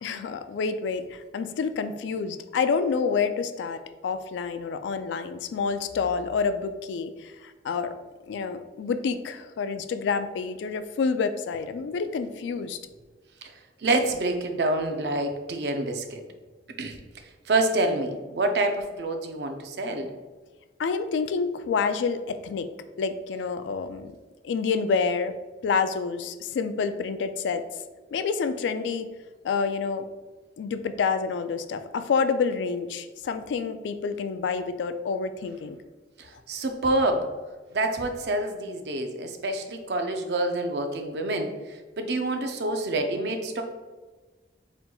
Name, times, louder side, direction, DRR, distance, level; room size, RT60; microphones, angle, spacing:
voice 1, 0.0-7.3 7.6-7.9 8.3-12.8 20.8-22.7 23.0-24.1 24.4-25.4 25.6-27.6 28.1-29.1 29.4-30.1 30.6-35.8, left 5 dB, 85° left, 11 dB, 0.3 m, -28 dB
voice 2, 13.8-16.2 16.8-17.0 17.5-20.1 36.2-37.3 37.7-43.6, right 2 dB, 65° right, 5 dB, 0.5 m, -27 dB
4.3 x 3.9 x 2.3 m, 1.3 s
head